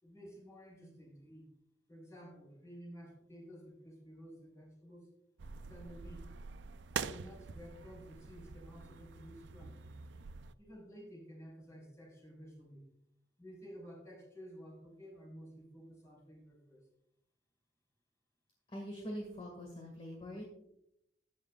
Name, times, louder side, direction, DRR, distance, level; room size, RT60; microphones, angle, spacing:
voice 1, 0.0-1.5 1.9-5.1 5.5-6.3 6.9-9.9 10.6-12.9 13.4-16.8, equal, 15° left, -2 dB, 4.4 m, -53 dB
sound 1, 5.4-10.5, right 6 dB, 85° right, 0.4 m, -45 dB
voice 2, 18.7-20.4, equal, 30° left, -1 dB, 1.9 m, -43 dB
14.0 x 9.1 x 2.4 m, 0.79 s
head